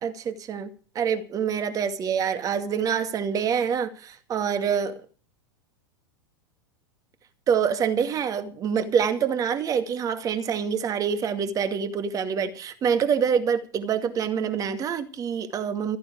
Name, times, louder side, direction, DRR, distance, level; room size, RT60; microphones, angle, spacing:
voice 1, 0.0-5.0 7.5-16.0, right 7 dB, 30° right, 2.3 m, -26 dB
15.0 x 14.5 x 5.0 m
figure-of-eight pair, 90°, 12 cm